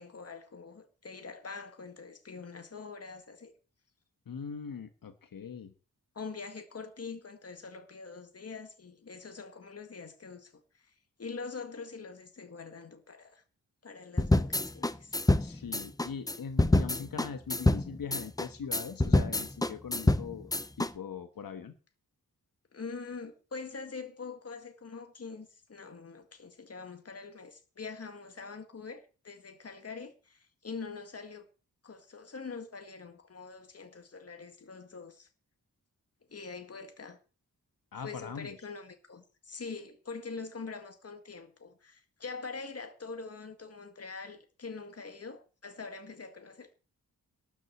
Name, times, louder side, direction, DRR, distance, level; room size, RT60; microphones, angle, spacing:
voice 1, 0.0-3.5 6.1-10.9 11.2-13.4 13.8-15.2 22.7-31.5 31.8-35.3 36.3-37.2 38.0-46.7, left 4 dB, 45° left, 1.9 m, -44 dB
voice 2, 4.2-5.7 15.4-20.5 20.8-21.7 37.9-38.6, left 6 dB, 75° left, 1.4 m, -41 dB
sound 1, 14.2-20.9, left 2 dB, 10° left, 0.6 m, -27 dB
12.5 x 6.3 x 8.6 m
wide cardioid pair, 150°, 34 cm